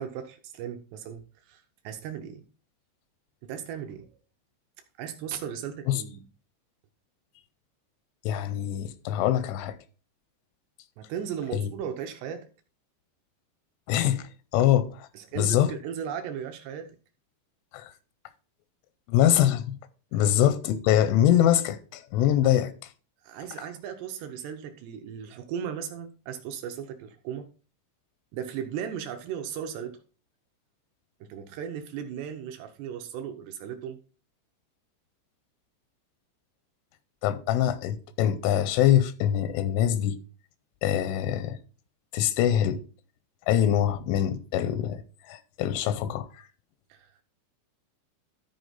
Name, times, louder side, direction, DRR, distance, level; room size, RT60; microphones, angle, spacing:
voice 1, 0.0-2.5 3.4-4.1 5.0-6.3 11.0-12.5 15.1-17.0 20.1-20.3 23.2-27.5 28.3-30.0 31.2-34.0 46.9-47.2, right 8 dB, 80° right, 2.5 m, -37 dB
voice 2, 8.3-9.8 11.5-11.7 13.9-14.3 14.5-15.1 15.4-15.7 17.7-17.9 19.1-19.8 20.1-22.7 37.2-40.2 40.8-41.6 42.1-42.8 43.5-45.0 45.3-46.3, left 11 dB, 85° left, 3.1 m, -24 dB
13.5 x 4.8 x 4.0 m
omnidirectional pair, 5.5 m